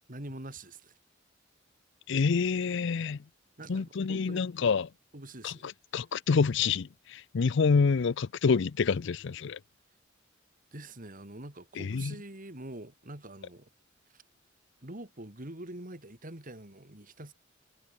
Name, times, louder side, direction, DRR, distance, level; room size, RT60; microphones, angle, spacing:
voice 1, 0.1-0.9 3.6-4.5 5.1-5.7 10.7-13.7 14.1-14.2 14.8-17.3, right 1 dB, 45° right, 3.8 m, -45 dB
voice 2, 2.1-3.2 3.7-4.9 5.4-9.6 11.8-12.1, left 5 dB, 65° left, 0.5 m, -27 dB
head